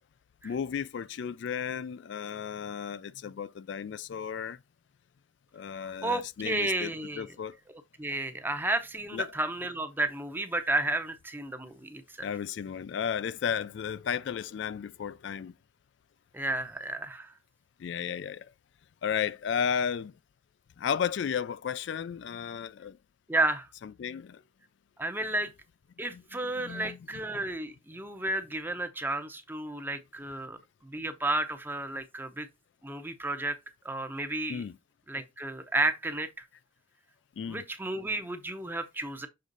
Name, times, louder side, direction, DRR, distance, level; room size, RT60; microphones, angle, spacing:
voice 1, 0.4-4.6 5.5-7.6 9.1-9.3 12.2-15.5 17.8-18.5 19.0-20.1 20.8-23.0 23.8-24.4 26.1-27.0 34.5-34.8 37.4-37.6, left 7 dB, 65° left, 0.3 m, -34 dB
voice 2, 6.0-7.2 8.0-12.3 16.3-17.3 23.3-23.7 25.0-25.5 26.0-32.5 32.8-33.6 33.8-34.6 35.1-36.3 37.5-39.3, right 2 dB, 10° right, 0.7 m, -32 dB
6.7 x 3.6 x 3.9 m
head